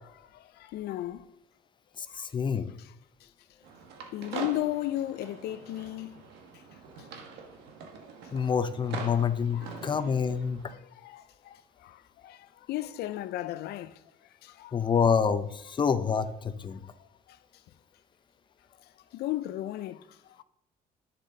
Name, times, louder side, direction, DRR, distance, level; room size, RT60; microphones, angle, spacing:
voice 1, 0.3-1.3 2.2-2.3 2.8-2.9 4.1-6.2 9.5-10.1 10.6-14.0 14.4-14.8 17.0-17.4 19.1-20.4, left 14 dB, 75° left, 0.5 m, -36 dB
voice 2, 2.0-2.7 8.3-10.6 14.7-16.3 16.6-16.8, left 6 dB, 30° left, 0.6 m, -27 dB
sound 1, 3.6-10.7, right 5 dB, 85° right, 1.3 m, -43 dB
11.0 x 6.6 x 3.9 m
cardioid pair, 110°, 17 cm